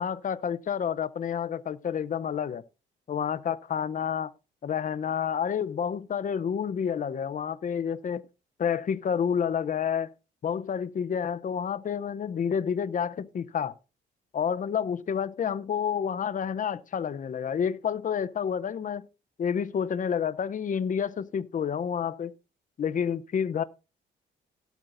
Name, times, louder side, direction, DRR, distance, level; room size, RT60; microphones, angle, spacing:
voice 1, 0.0-2.6 3.1-4.3 4.6-8.3 8.6-10.1 10.4-13.8 14.3-19.1 19.4-22.3 22.8-23.6, left 7 dB, 40° left, 0.7 m, -29 dB
17.0 x 8.2 x 2.6 m
cardioid pair, 90°, 20 cm